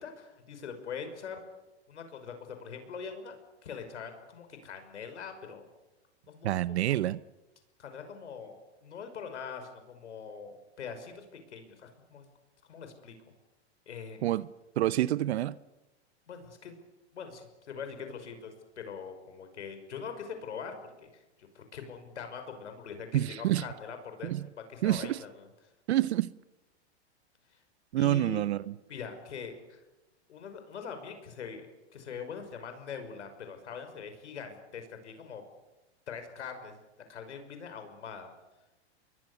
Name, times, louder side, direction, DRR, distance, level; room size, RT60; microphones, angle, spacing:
voice 1, 0.0-1.4 1.9-3.4 3.6-5.7 6.3-7.0 7.8-12.3 12.7-13.1 13.9-14.2 16.3-16.8 17.1-20.8 21.0-24.3 24.7-25.3 28.0-28.4 28.9-29.8 30.3-31.7 31.9-35.4 36.1-36.8 37.1-38.3, left 6 dB, 85° left, 5.8 m, -43 dB
voice 2, 6.4-7.2 14.2-14.5 14.8-15.6 23.1-23.6 24.2-24.5 24.8-25.2 25.9-26.3 27.9-28.7, right 14 dB, 70° right, 0.8 m, -27 dB
29.0 x 22.0 x 7.0 m
hypercardioid pair, 140°, 34 cm